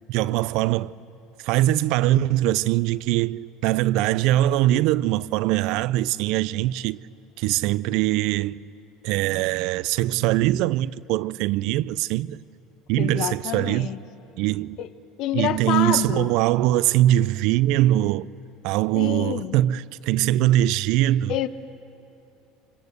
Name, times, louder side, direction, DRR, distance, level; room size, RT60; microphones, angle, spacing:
voice 1, 0.1-0.9 1.4-7.0 7.4-8.6 9.0-12.4 12.9-13.9 14.4-14.8 15.3-18.3 18.6-21.3, right 15 dB, 70° right, 0.5 m, -22 dB
voice 2, 13.0-14.0 14.8-14.9 15.2-16.3 18.9-19.6 21.3-21.5, left 11 dB, 60° left, 1.1 m, -27 dB
25.5 x 24.5 x 8.1 m
supercardioid pair, 90°, 0 cm